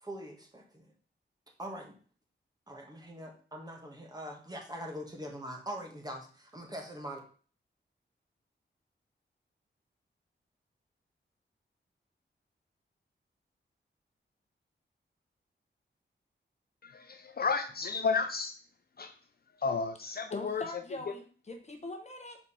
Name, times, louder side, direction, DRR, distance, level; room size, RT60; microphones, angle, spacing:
voice 1, 0.0-0.9 1.6-1.9 2.7-7.2, equal, 20° right, 1 dB, 1.4 m, -42 dB
voice 2, 16.8-18.5 19.0-19.1 19.6-20.6, left 5 dB, 50° left, 7 dB, 0.5 m, -32 dB
voice 3, 20.3-22.4, left 2 dB, 35° left, 3 dB, 1.1 m, -42 dB
4.6 x 4.3 x 5.5 m, 0.42 s
wide cardioid pair, 130°, 20 cm